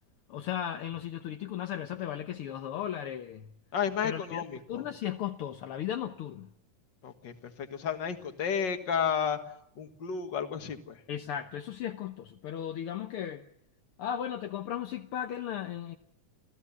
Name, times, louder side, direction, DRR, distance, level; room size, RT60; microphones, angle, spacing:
voice 1, 0.3-3.5 4.0-6.5 11.1-13.4 14.0-16.0, left 10 dB, 65° left, 1.5 m, -36 dB
voice 2, 3.7-4.8 7.0-9.4 9.8-11.0, left 7 dB, 45° left, 1.9 m, -32 dB
27.5 x 15.5 x 7.2 m
omnidirectional pair, 3.4 m